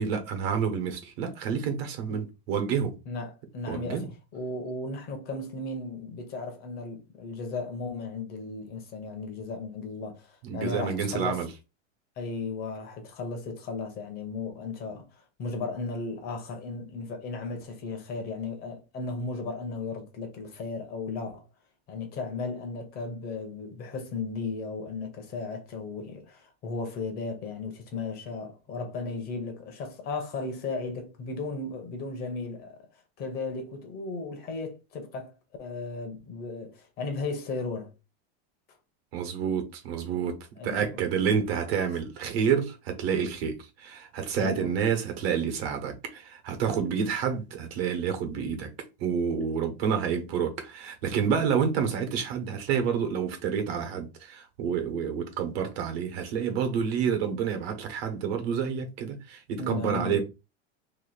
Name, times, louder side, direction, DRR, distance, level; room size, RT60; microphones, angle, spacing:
voice 1, 0.0-2.9 3.7-4.1 10.4-11.5 39.1-40.4 40.6-48.7 49.0-60.3, right 7 dB, 70° right, 1.2 m, -29 dB
voice 2, 3.1-11.5 12.2-21.4 21.9-32.9 33.2-37.9 40.6-41.0 44.4-44.7 59.6-60.3, left 3 dB, 30° left, 0.7 m, -35 dB
3.0 x 2.6 x 4.0 m
supercardioid pair, 165°, 32 cm